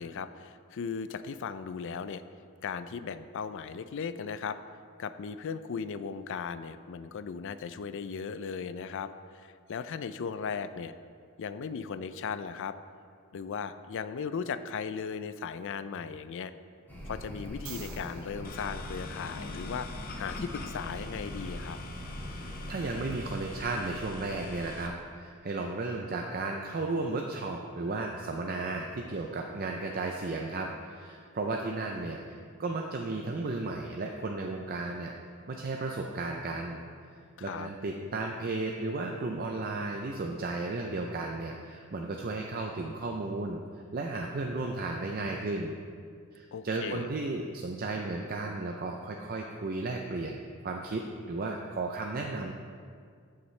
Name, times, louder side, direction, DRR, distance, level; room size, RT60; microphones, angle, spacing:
voice 1, 0.0-2.2 2.6-4.6 5.0-10.9 11.4-12.8 13.3-16.5 17.1-19.9 20.2-21.8 37.4-37.7 46.5-47.1, left 6 dB, 55° left, 12 dB, 0.4 m, -37 dB
sound 1, 16.9-23.3, left 1 dB, 10° left, 1.6 m, -42 dB
sound 2, 17.5-19.7 23.1-23.2, right 6 dB, 65° right, 1.0 m, -49 dB
sound 3, 18.4-24.9, left 2 dB, 40° left, 0.8 m, -43 dB
voice 2, 22.7-35.1 35.5-36.8 37.4-43.6 43.9-45.7 46.3-52.5, right 3 dB, 40° right, 2 dB, 0.5 m, -34 dB
13.5 x 5.8 x 3.2 m, 2.2 s
head